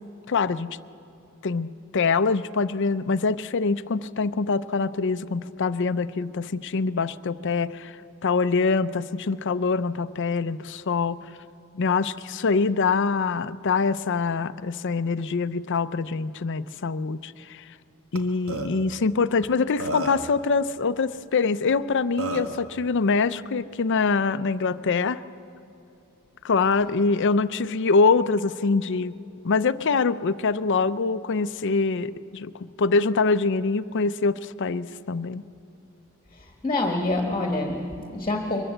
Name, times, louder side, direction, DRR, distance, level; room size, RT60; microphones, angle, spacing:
voice 1, 0.3-0.8 1.4-8.0 8.2-11.2 11.7-17.6 18.1-25.2 26.4-29.2 29.4-35.4, left 4 dB, 55° left, 14 dB, 0.5 m, -24 dB
Burping eructation, 18.1-18.2 18.5-18.7 19.4-19.5 19.8-20.3 21.7-21.8 22.2-22.5, right 2 dB, 65° right, 1.6 m, -30 dB
voice 2, 36.3-38.6, left 2 dB, 25° left, 3 dB, 1.5 m, -27 dB
23.0 x 20.5 x 7.9 m, 2.8 s
head